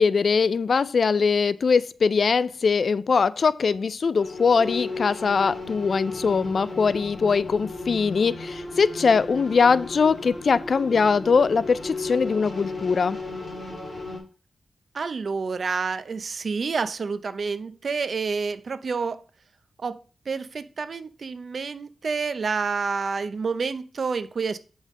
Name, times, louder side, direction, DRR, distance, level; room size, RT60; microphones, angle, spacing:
voice 1, 0.0-13.2, left 5 dB, 50° left, 0.3 m, -21 dB
sound 1, 4.2-14.2, left 2 dB, 30° left, 2.4 m, -35 dB
voice 2, 14.9-19.2 19.8-20.0 20.3-24.6, right 5 dB, 50° right, 0.6 m, -28 dB
8.0 x 5.5 x 3.7 m
wide cardioid pair, 150°, 0 cm